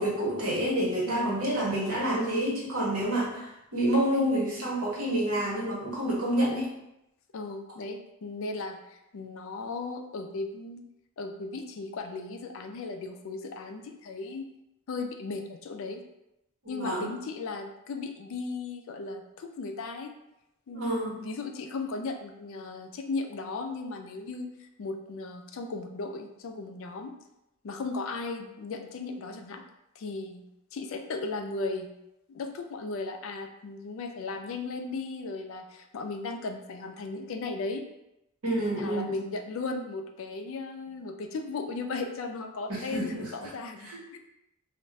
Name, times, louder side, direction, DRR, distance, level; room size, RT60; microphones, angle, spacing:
voice 1, 0.0-6.7 16.6-17.1 20.7-21.2 38.4-39.2 42.7-43.5 43.8-44.0, right 1 dB, 80° right, -4 dB, 1.1 m, -28 dB
voice 2, 1.1-1.4 7.3-10.8 11.2-14.5 14.9-16.0 16.7-20.1 20.7-27.1 27.6-29.6 30.0-30.4 30.7-31.9 32.3-37.8 38.8-44.2, left 3 dB, 60° left, 5 dB, 0.3 m, -36 dB
2.3 x 2.2 x 3.9 m, 0.87 s
head